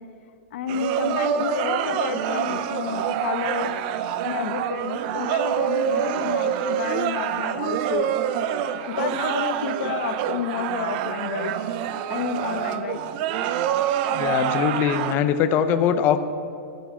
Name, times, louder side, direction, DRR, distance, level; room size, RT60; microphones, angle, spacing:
voice 1, 0.5-3.7 4.2-8.1 8.9-11.5 12.1-13.0, left 8 dB, 65° left, 9 dB, 1.0 m, -30 dB
sound 1, 0.7-15.2, right 10 dB, 40° right, 0.6 m, -26 dB
voice 2, 14.1-16.2, left 9 dB, 30° left, 9 dB, 0.7 m, -21 dB
14.5 x 7.5 x 7.1 m, 2.5 s
supercardioid pair, 155°, 7 cm